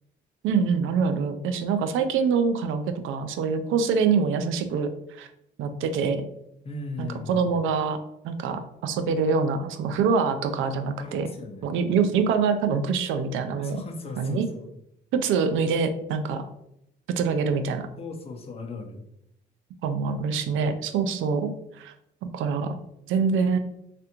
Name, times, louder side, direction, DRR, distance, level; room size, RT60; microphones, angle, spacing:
voice 1, 0.4-4.9 5.2-5.3 5.6-6.2 7.0-8.0 8.2-11.3 11.6-13.8 14.2-14.5 15.1-16.5 17.2-17.9 19.8-21.9 22.2-22.8 23.1-23.6, right 5 dB, 85° right, 9 dB, 0.4 m, -25 dB
voice 2, 6.6-7.5 11.0-11.7 13.6-14.7 18.0-19.0, left 2 dB, 30° left, 2 dB, 0.6 m, -37 dB
3.3 x 2.5 x 2.9 m, 0.79 s
cardioid pair, 90°, 20 cm